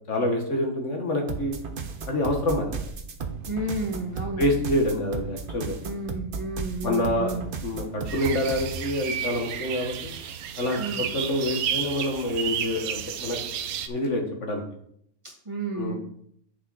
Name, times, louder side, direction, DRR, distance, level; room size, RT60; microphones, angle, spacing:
voice 1, 0.1-1.6 2.1-2.9 4.4-5.8 6.8-10.1 10.6-13.4 13.9-14.6 15.7-16.0, left 1 dB, 55° left, 2 dB, 1.7 m, -27 dB
sound 1, 1.3-8.9, right 5 dB, 45° right, 0.8 m, -34 dB
voice 2, 3.5-4.4 5.8-7.5 10.8-11.0 15.2-16.0, right 2 dB, 20° right, -2 dB, 1.9 m, -32 dB
sound 2, 8.1-13.9, right 9 dB, 75° right, 1.1 m, -32 dB
8.5 x 6.7 x 4.0 m, 0.68 s
omnidirectional pair, 1.5 m